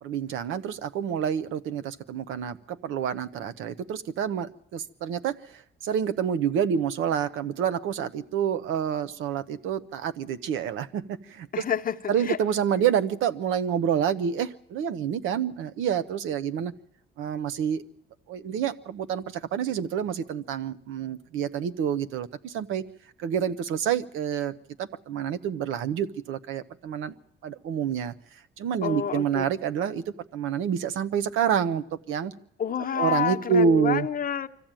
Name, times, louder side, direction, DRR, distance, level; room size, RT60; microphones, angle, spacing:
voice 1, 0.0-11.6 12.1-16.7 17.2-17.8 18.3-22.8 23.2-24.5 24.8-27.1 27.4-28.1 28.6-32.3 32.9-34.1, right 8 dB, 90° right, 11 dB, 1.0 m, -28 dB
voice 2, 11.5-12.0 12.3-12.4 28.8-29.5 32.6-34.5, left 8 dB, 45° left, 7 dB, 0.9 m, -28 dB
24.0 x 14.5 x 9.0 m, 0.73 s
cardioid pair, 90°, 20 cm